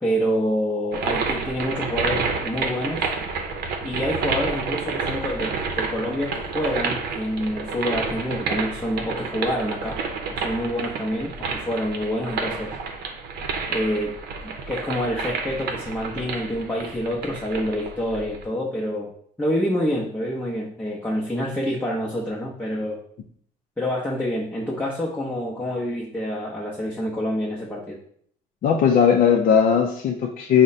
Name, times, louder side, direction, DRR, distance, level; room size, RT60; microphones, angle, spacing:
voice 1, 0.0-3.1 3.8-10.0 10.3-12.7 13.7-14.2 14.4-19.1 19.4-23.0 23.8-28.0, equal, 10° left, -6 dB, 0.7 m, -27 dB
sound 1, 0.9-18.4, right 4 dB, 70° right, 0.7 m, -29 dB
voice 2, 28.6-30.6, left 7 dB, 55° left, 1 dB, 0.5 m, -18 dB
4.7 x 2.1 x 4.0 m, 0.63 s
cardioid pair, 110°, 17 cm